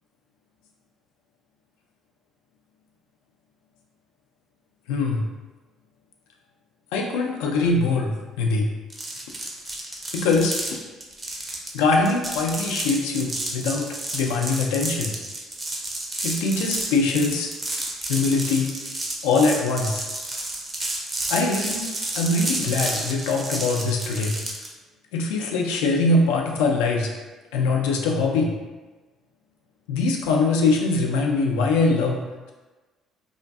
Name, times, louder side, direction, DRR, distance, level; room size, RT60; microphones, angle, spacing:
voice 1, 4.9-5.3 6.9-8.7 10.1-10.6 11.7-15.2 16.2-17.5 18.1-18.7 19.2-20.0 21.3-21.9 22.1-24.3 25.1-27.1 27.5-28.5 29.9-32.5, left 3 dB, 80° left, 0 dB, 0.3 m, -22 dB
sound 1, 8.9-24.7, right 1 dB, 25° right, 0.5 m, -31 dB
2.5 x 2.4 x 2.2 m, 1.2 s
hypercardioid pair, 55°, 0 cm